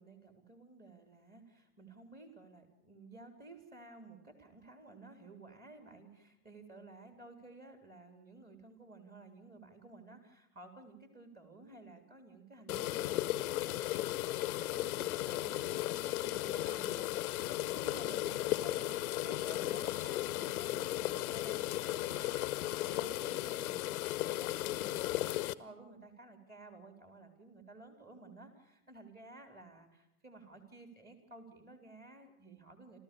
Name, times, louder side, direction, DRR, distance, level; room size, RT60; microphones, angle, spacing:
voice 1, 0.0-13.8 14.6-33.0, right 3 dB, 20° right, 6 dB, 3.8 m, -54 dB
sound 1, 12.7-25.5, left 15 dB, 65° left, 0.9 m, -35 dB
29.5 x 13.5 x 7.0 m, 0.84 s
hypercardioid pair, 90°, 47 cm